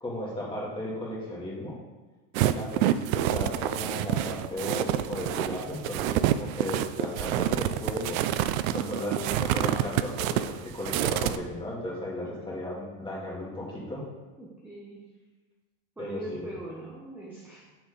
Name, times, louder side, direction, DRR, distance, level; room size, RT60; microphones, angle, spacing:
voice 1, 0.0-1.7 2.4-8.2 8.7-14.0 16.0-16.5, left 1 dB, 15° left, -5 dB, 2.1 m, -35 dB
sound 1, 2.3-11.4, right 13 dB, 85° right, 0.5 m, -27 dB
voice 2, 14.4-15.1 16.0-17.7, right 1 dB, 5° right, -4 dB, 0.9 m, -41 dB
6.8 x 4.7 x 5.0 m, 1.2 s
supercardioid pair, 140°, 40 cm